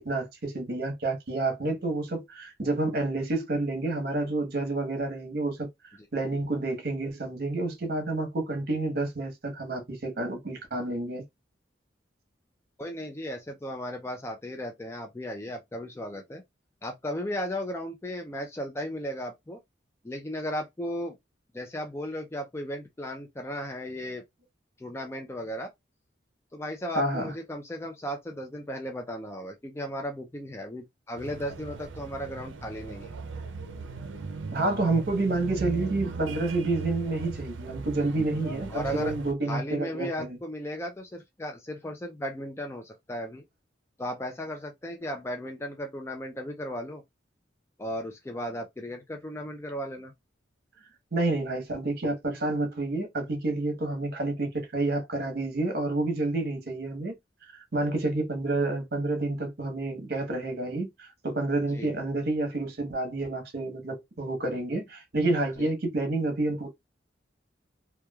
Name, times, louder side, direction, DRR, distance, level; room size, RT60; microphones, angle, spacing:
voice 1, 0.0-5.7 6.1-11.2 26.9-27.3 34.5-40.4 51.1-57.1 57.7-66.7, right 2 dB, 55° right, 0.9 m, -29 dB
voice 2, 12.8-16.4 16.8-19.6 20.0-21.2 21.5-24.2 24.8-25.7 26.5-33.1 38.7-39.1 39.5-43.4 44.0-47.0 47.8-50.1 61.7-62.0 65.6-65.7, equal, 15° left, 0.4 m, -35 dB
sound 1, 31.2-39.3, right 4 dB, 90° right, 0.5 m, -38 dB
2.9 x 2.2 x 2.3 m
head